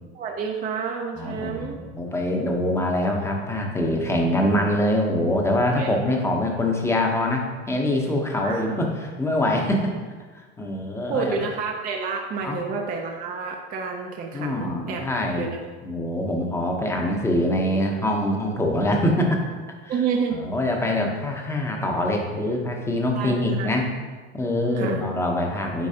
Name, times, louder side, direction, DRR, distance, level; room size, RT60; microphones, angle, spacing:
voice 1, 0.1-1.8 5.8-6.0 8.4-8.8 11.1-15.1 15.4-15.6 19.9-20.4 23.1-23.7 24.8-25.0, right 5 dB, 25° right, 1 dB, 0.5 m, -29 dB
voice 2, 1.2-9.9 10.3-11.3 12.4-12.6 14.3-15.5 15.8-19.4 20.4-23.9 24.3-25.9, left 1 dB, 10° left, 1 dB, 0.8 m, -24 dB
8.5 x 4.5 x 2.8 m, 1.4 s
supercardioid pair, 125°, 35 cm